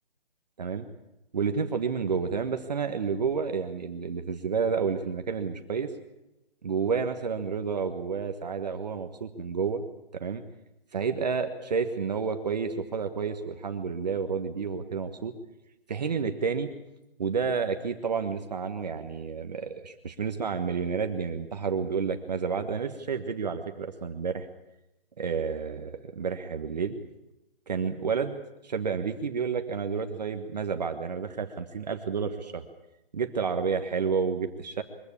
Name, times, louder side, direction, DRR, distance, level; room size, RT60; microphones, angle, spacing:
voice 1, 1.3-5.9 6.6-9.8 10.1-10.4 10.9-15.3 15.9-16.7 17.2-24.5 25.2-27.0 27.7-28.4 28.6-32.6 33.1-34.8, right 5 dB, 45° right, 6 dB, 1.4 m, -30 dB
23.0 x 15.5 x 8.5 m, 0.95 s
hypercardioid pair, 165°, 30 cm